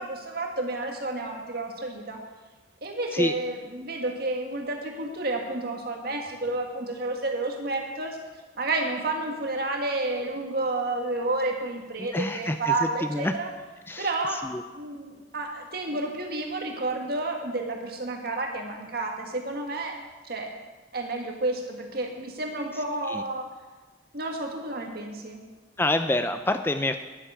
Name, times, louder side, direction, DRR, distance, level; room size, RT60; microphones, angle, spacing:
voice 1, 0.0-2.2 2.8-8.2 8.6-13.5 14.0-14.5 14.7-19.9 20.2-20.5 20.9-23.5 24.1-25.4, right 2 dB, 55° right, 2 dB, 1.9 m, -30 dB
voice 2, 12.0-13.3 13.9-14.1 14.4-14.6 23.1-23.2 25.8-27.0, left 2 dB, 10° left, 9 dB, 0.4 m, -27 dB
10.0 x 9.4 x 7.5 m, 1.3 s
head